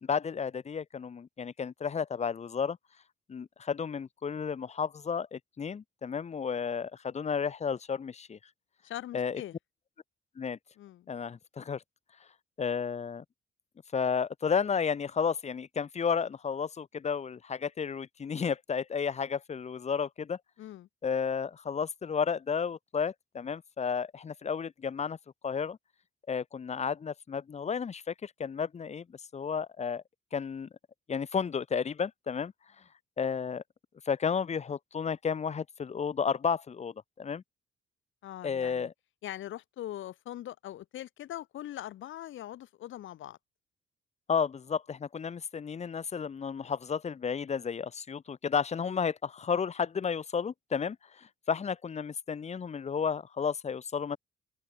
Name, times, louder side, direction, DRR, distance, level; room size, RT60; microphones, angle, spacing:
voice 1, 0.0-2.8 3.3-8.4 9.1-9.4 10.4-10.6 11.1-11.8 12.6-13.2 13.9-20.4 21.0-25.2 25.4-25.8 26.3-29.0 29.3-30.0 30.3-30.7 31.1-32.5 33.2-33.6 34.1-37.4 38.4-38.9 44.3-54.2, left 6 dB, 35° left, 0.9 m, -32 dB
voice 2, 8.8-9.6 10.8-11.1 20.6-20.9 38.2-38.9 39.2-43.4, left 13 dB, 75° left, 2.5 m, -42 dB
open air
cardioid pair, 90°, 20 cm